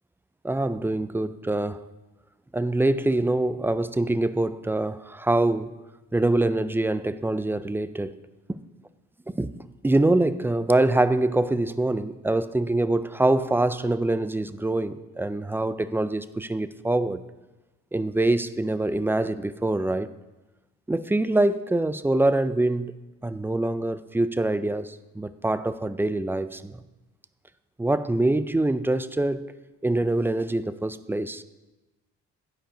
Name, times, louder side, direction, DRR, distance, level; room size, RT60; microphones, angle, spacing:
voice 1, 0.4-1.8 2.5-5.7 6.1-8.1 8.5-8.6 9.3-9.5 9.8-17.2 17.9-20.1 20.9-22.9 23.2-26.7 27.8-29.4 29.8-31.4, right 2 dB, 10° right, 0.3 m, -24 dB
11.5 x 5.1 x 5.0 m
cardioid pair, 90°, 30 cm